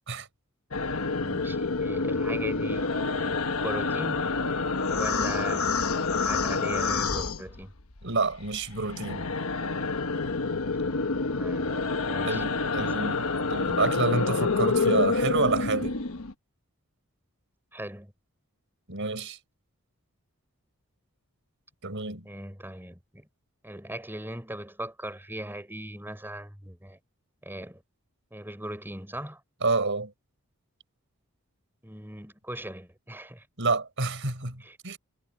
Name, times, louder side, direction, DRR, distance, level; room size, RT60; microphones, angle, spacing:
sound 1, 0.7-8.0 8.3-16.3, left 4 dB, 70° left, 1.3 m, -28 dB
voice 1, 1.1-4.3 4.9-5.8 6.2-7.7 11.2-11.7 12.0-12.4 12.8-12.9 17.7-18.1 22.2-23.3 23.6-27.0 27.4-27.8 28.3-29.4 31.8-33.5 34.6-34.8, right 1 dB, 10° right, 5.9 m, -39 dB
voice 2, 8.0-9.3 12.2-16.0 18.9-19.4 21.8-22.3 29.6-30.1 33.6-35.0, right 3 dB, 60° right, 5.2 m, -28 dB
head